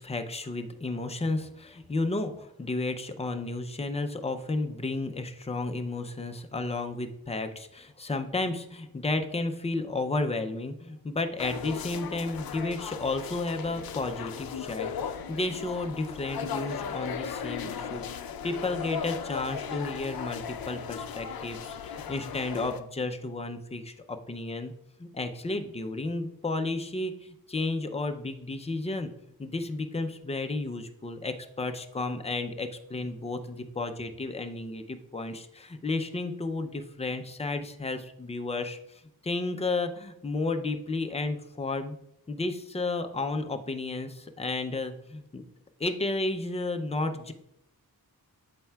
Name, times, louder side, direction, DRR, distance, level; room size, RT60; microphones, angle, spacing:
voice 1, 0.0-18.0 18.4-24.7 25.0-29.1 29.4-38.8 39.2-41.9 42.3-45.4 45.8-47.3, left 2 dB, 15° left, 6 dB, 0.4 m, -32 dB
sound 1, 11.4-22.8, left 7 dB, 70° left, 0.5 m, -37 dB
13.0 x 4.3 x 2.3 m, 0.80 s
wide cardioid pair, 170°, 37 cm